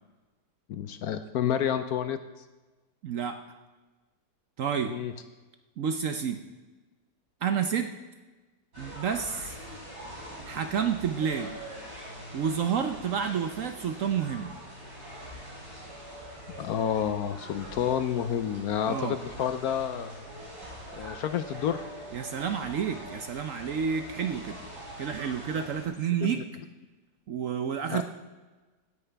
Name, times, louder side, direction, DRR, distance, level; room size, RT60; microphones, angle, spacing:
voice 1, 0.7-2.2 4.9-5.1 16.6-20.1 21.0-21.8 26.3-26.4 27.9-28.0, left 9 dB, 70° left, 10 dB, 1.0 m, -29 dB
voice 2, 3.0-3.4 4.6-4.9 5.8-6.4 7.4-7.9 8.8-9.6 10.4-11.6 12.3-14.5 18.9-19.2 22.1-24.6 25.0-26.4 27.3-28.0, right 7 dB, 60° right, 7 dB, 0.9 m, -29 dB
sound 1, 8.7-25.9, equal, 90° right, 5.0 m, -43 dB
17.0 x 9.7 x 3.4 m, 1.2 s
omnidirectional pair, 1.9 m